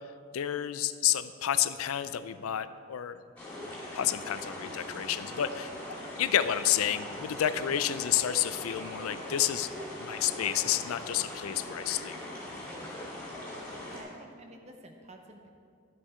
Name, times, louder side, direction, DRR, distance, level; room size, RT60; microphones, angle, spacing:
voice 1, 0.3-3.2 3.6-5.7 6.2-9.7 10.0-12.2, left 11 dB, 85° left, 13 dB, 0.4 m, -30 dB
sound 1, 3.4-14.0, left 1 dB, 10° left, 2.3 m, -41 dB
voice 2, 13.8-15.5, right 1 dB, 30° right, 3 dB, 0.8 m, -50 dB
12.0 x 7.4 x 4.4 m, 2.3 s
head